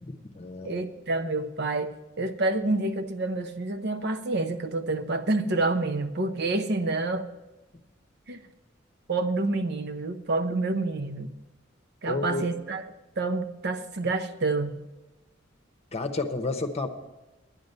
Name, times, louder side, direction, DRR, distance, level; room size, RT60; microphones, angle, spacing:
voice 1, 0.0-0.8 12.1-12.4 15.9-16.9, left 3 dB, 35° left, 6 dB, 0.8 m, -31 dB
voice 2, 0.6-7.3 8.3-8.4 9.1-11.3 12.0-12.8 13.2-14.8, right 2 dB, 60° right, 8 dB, 0.7 m, -28 dB
11.0 x 9.4 x 5.3 m, 1.1 s
head